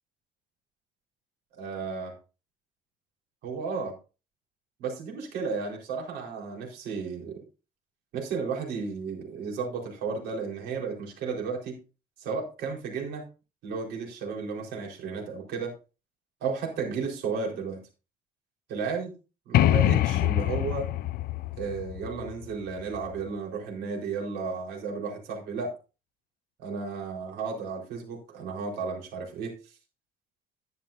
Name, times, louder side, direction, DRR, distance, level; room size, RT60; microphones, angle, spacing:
voice 1, 1.6-2.1 3.4-4.0 4.8-7.4 8.1-11.8 12.2-13.2 13.6-15.7 16.4-17.8 18.7-19.1 19.5-20.9 21.6-25.7 26.6-29.5, right 5 dB, 80° right, 0 dB, 4.3 m, -33 dB
sound 1, 19.5-23.2, left 13 dB, 60° left, 0.4 m, -25 dB
11.5 x 10.5 x 2.7 m, 0.31 s
cardioid pair, 110°, 17 cm